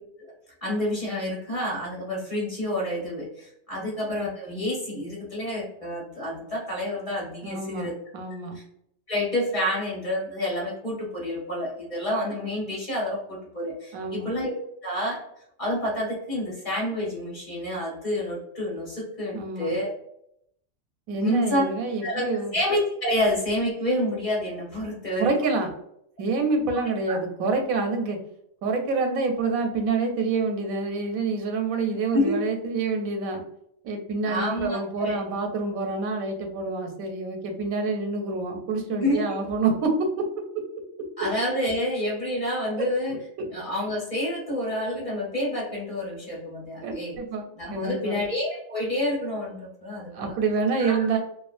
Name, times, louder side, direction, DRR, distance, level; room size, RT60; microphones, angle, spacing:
voice 1, 0.6-7.9 8.5-8.6 9.1-14.5 14.8-15.2 15.6-19.9 21.2-21.6 22.0-22.3 22.5-25.3 27.1-27.2 32.1-32.4 34.2-35.2 39.0-39.4 41.2-43.2 43.5-47.2 47.6-50.3 50.8-51.2, left 1 dB, 30° left, -4 dB, 1.0 m, -28 dB
voice 2, 7.4-8.6 13.9-14.3 19.3-19.7 21.1-22.6 25.2-25.7 26.2-28.2 28.6-33.4 33.8-40.3 42.8-42.9 43.4-43.5 46.8-48.2 50.1-51.2, right 3 dB, 85° right, 4 dB, 1.0 m, -27 dB
2.5 x 2.3 x 2.4 m, 0.73 s
omnidirectional pair, 1.4 m